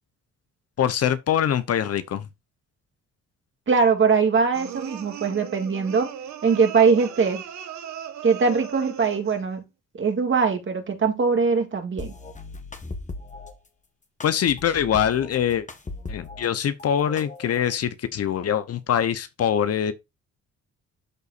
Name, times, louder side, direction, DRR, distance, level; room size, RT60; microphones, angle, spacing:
voice 1, 0.8-2.3 14.2-15.7 16.1-19.9, left 9 dB, 55° left, 0.8 m, -23 dB
voice 2, 3.7-6.1 6.4-7.4 8.2-9.6 9.9-12.1, right 5 dB, 40° right, 2.0 m, -21 dB
sound 1, 4.5-9.4, right 10 dB, 70° right, 1.3 m, -38 dB
sound 2, 12.0-13.5 14.2-16.5 16.8-17.8, left 3 dB, 25° left, 1.3 m, -38 dB
12.0 x 4.0 x 2.5 m
cardioid pair, 90°, 30 cm